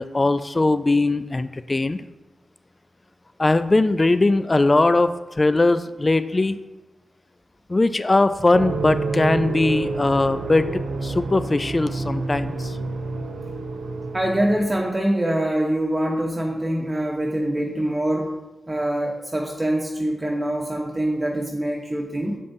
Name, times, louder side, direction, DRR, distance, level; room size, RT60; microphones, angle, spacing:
voice 1, 0.0-2.0 3.4-6.6 7.7-12.8, left 2 dB, 35° left, 12 dB, 0.3 m, -20 dB
sound 1, 8.5-14.8, right 3 dB, 90° right, 0.5 m, -29 dB
voice 2, 14.1-18.3 18.7-22.4, right 1 dB, 25° right, -1 dB, 0.9 m, -24 dB
6.6 x 5.3 x 2.7 m, 1.1 s
cardioid pair, 45°, 0 cm